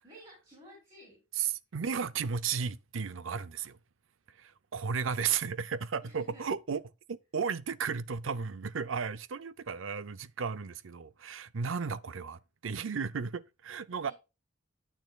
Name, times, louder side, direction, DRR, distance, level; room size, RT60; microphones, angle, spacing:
voice 1, 0.0-1.2 6.0-6.4 9.6-9.8 14.0-14.1, right 1 dB, 25° right, 4.5 m, -54 dB
voice 2, 1.3-3.8 4.3-6.8 7.1-14.1, right 6 dB, 85° right, 0.6 m, -34 dB
10.0 x 9.2 x 2.3 m
head